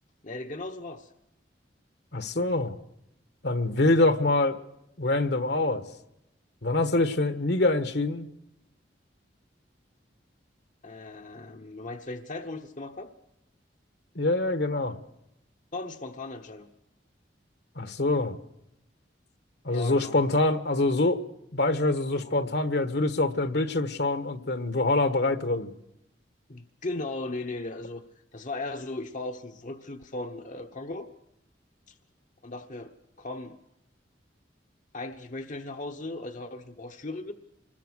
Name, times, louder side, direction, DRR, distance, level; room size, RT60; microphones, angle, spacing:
voice 1, 0.2-1.1 10.8-13.1 15.7-16.7 19.7-20.2 22.2-22.4 26.5-28.0 28.3-31.1 31.9-32.0 32.4-33.6 34.9-37.3, left 2 dB, 45° left, 5 dB, 1.1 m, -37 dB
voice 2, 2.1-2.8 3.4-4.6 5.0-5.9 6.6-8.3 14.1-15.0 17.7-18.4 19.6-21.2 21.5-25.7, left 2 dB, 65° left, 11 dB, 1.5 m, -25 dB
25.5 x 21.0 x 6.4 m, 0.83 s
head